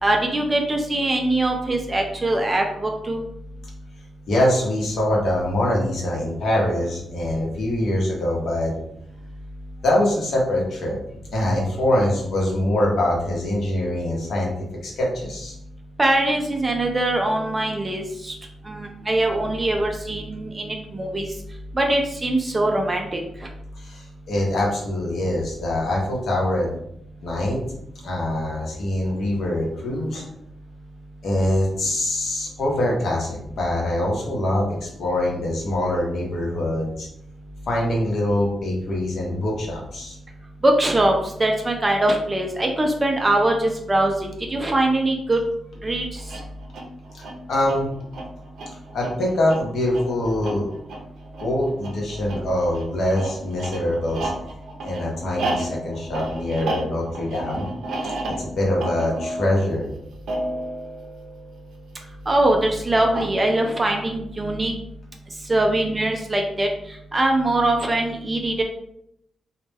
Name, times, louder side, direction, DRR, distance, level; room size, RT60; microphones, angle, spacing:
voice 1, 0.0-3.2 16.0-18.4 18.7-21.3 21.7-23.5 40.6-45.4 45.8-46.2 62.3-64.7 65.5-68.6, right 1 dB, 20° right, 2 dB, 0.3 m, -22 dB
voice 2, 4.3-8.7 9.8-11.0 11.3-14.5 14.8-15.6 23.8-26.7 27.2-27.6 28.0-30.2 31.2-37.1 37.7-40.2 47.1-47.2 47.5-47.9 48.9-50.7 51.4-54.3 54.8-57.7 58.0-58.1 58.4-59.9, left 1 dB, 60° left, -3 dB, 0.8 m, -24 dB
sound 1, 46.2-61.9 63.0-63.8, right 1 dB, 85° right, 0.5 m, -33 dB
2.1 x 2.1 x 3.3 m, 0.75 s
wide cardioid pair, 160°, 0 cm